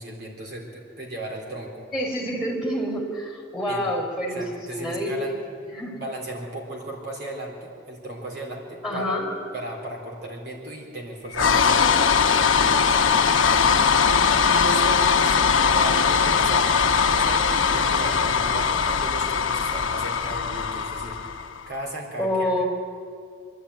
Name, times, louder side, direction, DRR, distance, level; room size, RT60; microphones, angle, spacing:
voice 1, 0.0-1.9 3.7-3.8 4.3-9.2 9.5-15.4 15.7-22.6, right 1 dB, 55° right, -1 dB, 3.8 m, -36 dB
voice 2, 1.9-4.4 4.7-5.3 5.7-6.0 8.8-9.3 22.2-22.6, equal, ahead, -2 dB, 4.6 m, -27 dB
sound 1, 11.3-21.6, left 6 dB, 85° left, 0.9 m, -20 dB
26.5 x 11.5 x 9.6 m, 2.3 s
head